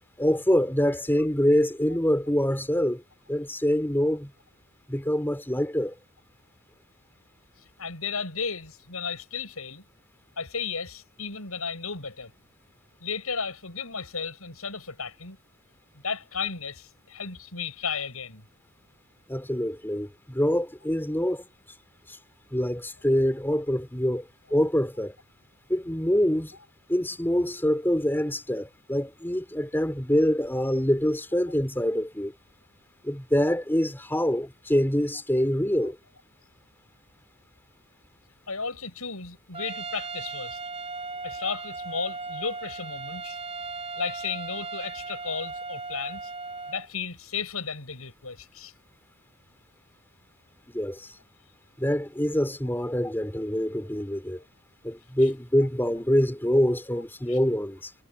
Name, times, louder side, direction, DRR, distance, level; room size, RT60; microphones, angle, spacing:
voice 1, 0.2-3.0 3.3-4.3 4.9-5.9 19.3-21.5 22.1-22.2 22.5-25.2 25.7-26.6 26.9-32.3 33.0-36.0 50.7-51.1 51.8-54.4 54.8-57.9, equal, 10° left, 3.4 m, -25 dB
voice 2, 7.8-9.8 10.4-12.3 13.0-15.4 15.9-18.4 23.5-23.6 38.5-40.6 41.2-43.4 44.0-46.2 46.7-48.7 57.3-57.4, left 5 dB, 75° left, 7.0 m, -34 dB
Trumpet, 39.5-46.9, right 3 dB, 25° right, 4.6 m, -37 dB
head